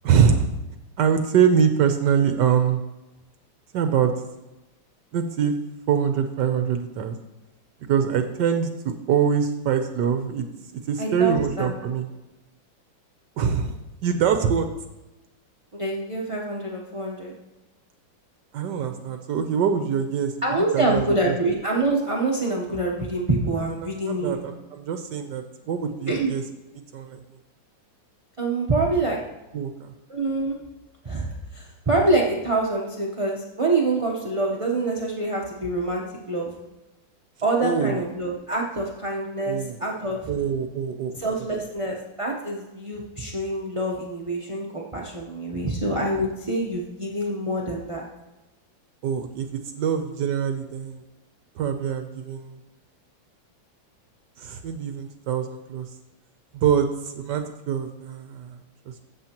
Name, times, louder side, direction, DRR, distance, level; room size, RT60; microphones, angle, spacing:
voice 1, 0.0-0.5 1.0-2.8 3.7-4.1 5.1-5.5 5.9-7.2 7.8-10.5 10.7-12.1 13.4-13.7 14.0-14.7 18.5-21.4 23.6-26.4 26.9-27.2 29.5-29.9 37.6-38.0 39.5-39.8 40.3-41.1 46.1-46.3 49.0-49.5 49.7-51.0 51.6-52.6 54.4-55.9 56.5-58.6, right 7 dB, 70° right, 7 dB, 1.2 m, -24 dB
voice 2, 11.0-11.7 15.7-17.3 20.4-24.4 26.1-26.3 28.4-29.2 30.1-30.6 31.0-36.6 37.4-40.3 41.2-48.0, right 2 dB, 35° right, -2 dB, 0.5 m, -26 dB
13.5 x 7.5 x 2.9 m, 1.0 s
omnidirectional pair, 2.1 m